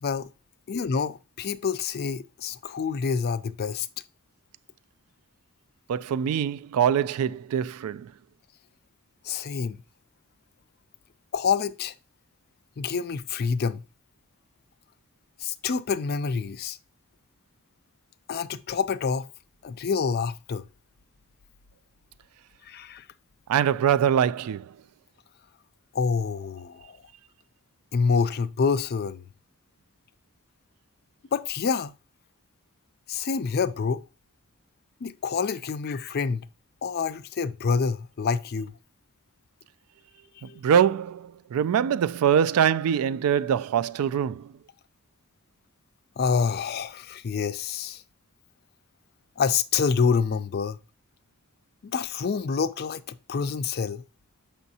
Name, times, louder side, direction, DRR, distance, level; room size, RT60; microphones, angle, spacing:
voice 1, 0.7-3.9 9.2-9.8 11.3-11.9 12.8-13.8 15.4-16.8 18.3-19.3 19.6-20.6 22.6-23.1 25.9-27.0 27.9-29.2 31.3-31.9 33.1-34.0 35.0-36.5 36.8-38.8 40.4-40.6 46.2-48.0 49.4-50.8 51.8-54.0, left 5 dB, 45° left, 0.4 m, -27 dB
voice 2, 5.9-8.1 23.5-24.7 40.4-44.5, right 8 dB, 75° right, 0.3 m, -23 dB
7.0 x 5.5 x 2.7 m
head